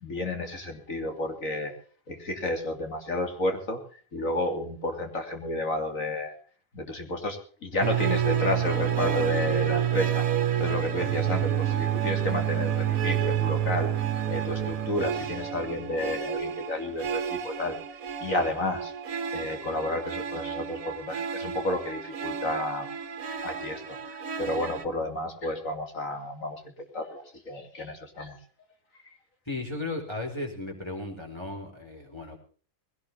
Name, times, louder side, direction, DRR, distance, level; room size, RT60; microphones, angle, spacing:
voice 1, 0.0-1.7 2.1-3.8 4.1-6.3 6.7-10.2 10.6-13.9 14.3-17.8 18.2-18.9 19.3-22.9 23.4-26.6 26.9-28.4, left 1 dB, 70° left, 5 dB, 3.2 m, -31 dB
sound 1, 7.8-24.8, right 9 dB, 75° right, 1.6 m, -29 dB
voice 2, 29.5-32.4, left 2 dB, 20° left, 1 dB, 4.3 m, -35 dB
20.5 x 17.0 x 2.9 m, 0.41 s
omnidirectional pair, 1.5 m